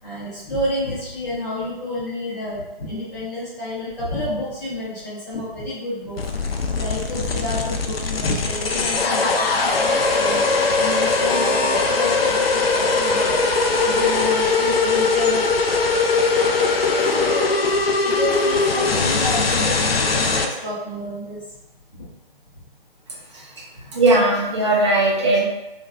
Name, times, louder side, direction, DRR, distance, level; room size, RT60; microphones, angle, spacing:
voice 1, 0.0-6.2 6.7-10.4 10.8-13.3 13.8-15.4 16.4-16.7 17.1-17.5 18.0-21.4, left 1 dB, 45° left, -14 dB, 1.3 m, -29 dB
sound 1, 6.2-20.4, left 3 dB, 85° left, 0.5 m, -20 dB
voice 2, 23.9-25.4, right 2 dB, 30° right, -5 dB, 0.7 m, -17 dB
3.0 x 2.5 x 2.4 m, 0.99 s
figure-of-eight pair, 150°, 29 cm